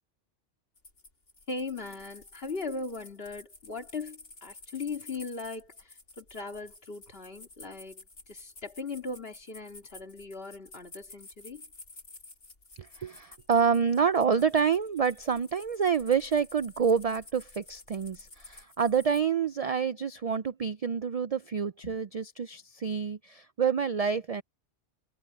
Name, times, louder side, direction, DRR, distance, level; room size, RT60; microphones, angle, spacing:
sound 1, 0.8-19.3, left 2 dB, 80° left, 3.5 m, -52 dB
voice 1, 1.5-11.6 21.8-22.0, left 3 dB, 55° left, 2.8 m, -39 dB
voice 2, 12.8-24.4, right 6 dB, 65° right, 0.3 m, -28 dB
omnidirectional pair, 1.2 m